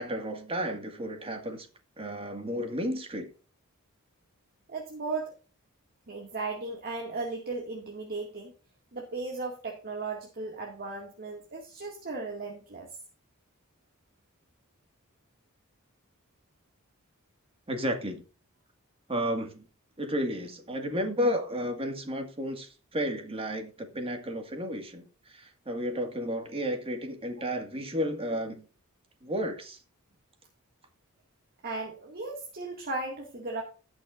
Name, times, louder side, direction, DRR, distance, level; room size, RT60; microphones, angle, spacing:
voice 1, 0.0-1.7 2.0-3.3 17.7-18.2 19.1-19.7 20.0-28.7 29.2-29.8, equal, 25° right, 1.9 m, -32 dB
voice 2, 4.7-5.3 6.1-8.5 8.9-12.9 31.6-33.6, right 3 dB, 45° right, 2.1 m, -36 dB
18.5 x 6.2 x 2.5 m
head